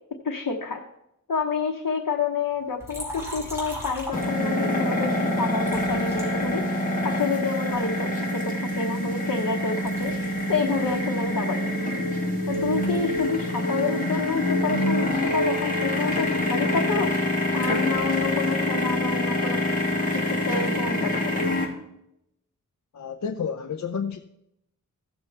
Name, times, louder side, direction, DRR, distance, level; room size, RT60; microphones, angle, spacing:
voice 1, 0.1-0.8 1.3-6.7 7.0-12.0 12.5-17.2 17.5-19.6 20.1-21.4, left 5 dB, 80° left, 1.0 m, -29 dB
Liquid, 2.8-4.8 5.6-7.1 7.7-9.5 9.7-13.4 13.7-15.3, equal, 10° right, 4.1 m, -41 dB
sound 1, 4.1-21.6, left 1 dB, 25° left, 2.4 m, -26 dB
Bass guitar, 4.4-7.5, right 1 dB, 80° right, 1.3 m, -39 dB
voice 2, 22.9-24.2, left 6 dB, 60° left, 0.6 m, -30 dB
15.5 x 7.0 x 3.4 m
wide cardioid pair, 80°, 33 cm